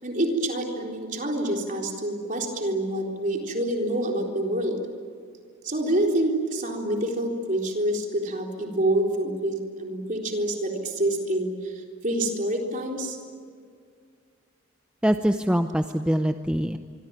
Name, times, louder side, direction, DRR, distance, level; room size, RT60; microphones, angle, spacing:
voice 1, 0.0-4.8 5.6-13.2, right 1 dB, 40° right, 1 dB, 4.0 m, -27 dB
voice 2, 15.0-16.8, equal, 5° right, 7 dB, 0.6 m, -23 dB
25.5 x 24.5 x 9.1 m, 2.1 s
head